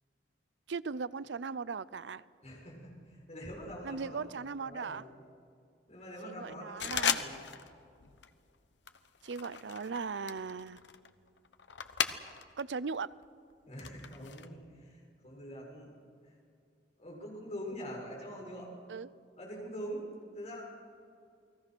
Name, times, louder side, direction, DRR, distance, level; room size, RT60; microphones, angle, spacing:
voice 1, 0.7-2.2 3.8-5.0 6.2-7.2 9.2-10.8 12.6-13.1 18.9-19.1, right 5 dB, 85° right, 18 dB, 0.6 m, -38 dB
voice 2, 2.4-4.2 4.6-5.1 5.9-7.4 13.6-15.9 17.0-18.7 19.4-20.6, equal, 40° left, -1 dB, 6.6 m, -44 dB
sound 1, 6.8-7.7 8.0-8.4 8.9-12.6 12.9-14.5, left 8 dB, 80° left, 1.1 m, -36 dB
29.5 x 20.5 x 6.2 m, 2.4 s
head